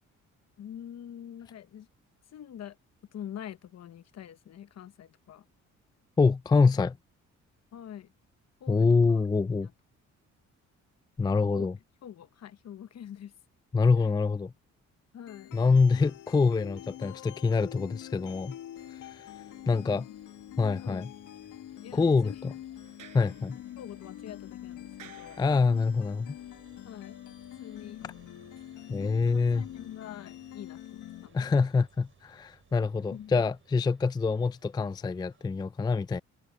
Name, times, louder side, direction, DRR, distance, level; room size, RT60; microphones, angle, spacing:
voice 1, 0.6-1.9 2.3-2.8 3.1-5.4 7.7-8.1 8.6-9.2 9.5-9.7 11.5-11.7 12.0-13.3 15.1-15.5 19.6-20.2 20.8-21.0 21.7-22.4 23.8-25.8 26.8-27.2 27.6-28.0 29.2-31.5 33.1-33.4, left 10 dB, 60° left, 1.1 m, -45 dB
voice 2, 6.2-7.0 8.7-9.7 11.2-11.7 13.7-14.5 15.5-18.5 19.1-19.2 19.7-20.1 20.6-21.1 21.9-22.5 23.1-23.6 25.4-26.3 28.9-29.7 31.3-36.2, left 4 dB, 15° left, 0.4 m, -25 dB
sound 1, 15.3-31.3, left 13 dB, 85° left, 1.7 m, -45 dB
sound 2, 18.7-35.5, right 6 dB, 40° right, 7.3 m, -61 dB
Sliding door, 22.8-26.1, right 12 dB, 80° right, 6.9 m, -56 dB
cardioid pair, 90°, 30 cm